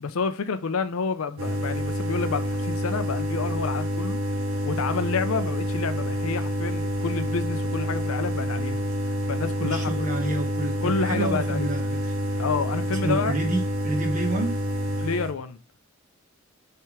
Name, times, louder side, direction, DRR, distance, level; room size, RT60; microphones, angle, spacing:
voice 1, 0.0-4.2 4.6-8.8 9.3-10.1 10.8-11.7 12.4-13.4 15.0-15.6, left 5 dB, 85° left, 0.5 m, -29 dB
sound 1, 1.4-15.3, equal, 75° right, 1.6 m, -28 dB
voice 2, 9.6-12.1 12.9-14.6, right 2 dB, 35° right, 1.3 m, -29 dB
5.8 x 3.5 x 4.7 m
head